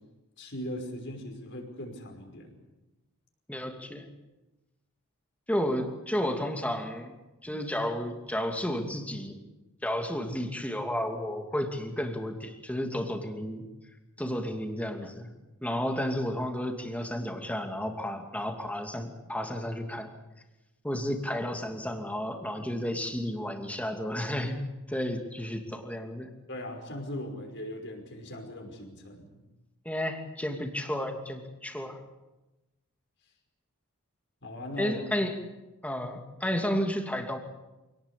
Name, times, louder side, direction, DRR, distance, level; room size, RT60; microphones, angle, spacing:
voice 1, 0.4-2.5 26.5-29.3 34.4-35.0, left 1 dB, 55° left, 3 dB, 5.5 m, -39 dB
voice 2, 3.5-4.1 5.5-7.1 7.4-9.4 9.8-13.7 14.2-15.3 15.6-20.1 20.8-24.6 24.9-26.3 29.8-32.0 34.8-35.3 35.8-37.4, equal, 5° left, 4 dB, 2.6 m, -32 dB
27.0 x 18.5 x 8.5 m, 1.0 s
head